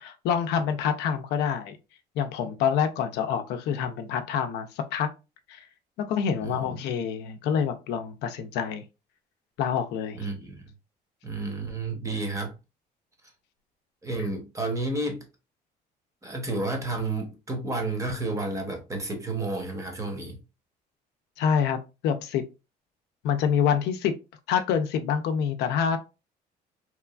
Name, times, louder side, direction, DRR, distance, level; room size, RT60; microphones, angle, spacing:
voice 1, 0.0-1.8 2.2-5.1 5.5-5.6 6.0-8.8 9.6-10.2 21.4-22.4 23.2-24.1 24.5-26.0, left 7 dB, 80° left, 0.4 m, -26 dB
voice 2, 6.4-6.7 10.1-10.6 11.2-12.5 14.0-15.2 16.2-20.4, right 2 dB, 20° right, 0.8 m, -31 dB
3.0 x 2.3 x 2.2 m
cardioid pair, 110°, 17 cm